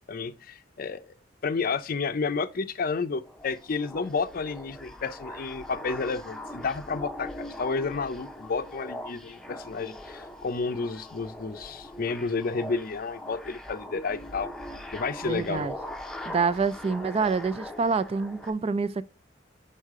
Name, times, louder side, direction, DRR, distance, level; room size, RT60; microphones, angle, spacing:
voice 1, 0.1-1.1 1.4-14.5 14.9-15.7, left 4 dB, 50° left, 0.5 m, -31 dB
sound 1, 3.2-18.5, left 1 dB, 5° left, 0.7 m, -41 dB
voice 2, 15.2-15.7 16.3-19.0, right 4 dB, 35° right, 0.3 m, -27 dB
6.5 x 5.4 x 3.6 m
head